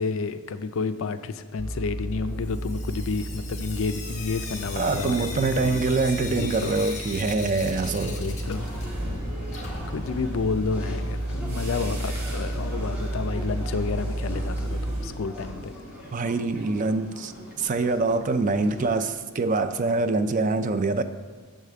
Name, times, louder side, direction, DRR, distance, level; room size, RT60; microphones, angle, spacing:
voice 1, 0.0-6.8 8.1-8.7 9.5-15.7, left 4 dB, 60° left, 11 dB, 0.4 m, -31 dB
sound 1, 1.6-15.1, right 1 dB, 75° right, 1.9 m, -32 dB
Sink (filling or washing) / Drip, 2.4-9.2 9.4-11.4 12.5-12.6 12.9-13.0 13.3-13.4 16.3-16.4 16.9-17.0 17.5-17.6 18.2-18.3 18.9-19.0 19.9-20.0, left 4 dB, 30° left, 1.0 m, -40 dB
voice 2, 4.8-8.2 16.1-17.3 17.6-21.0, right 3 dB, 35° right, 11 dB, 0.3 m, -25 dB
sound 2, 8.5-19.0, equal, 5° right, 1.6 m, -43 dB
7.3 x 4.9 x 6.8 m, 1.4 s
head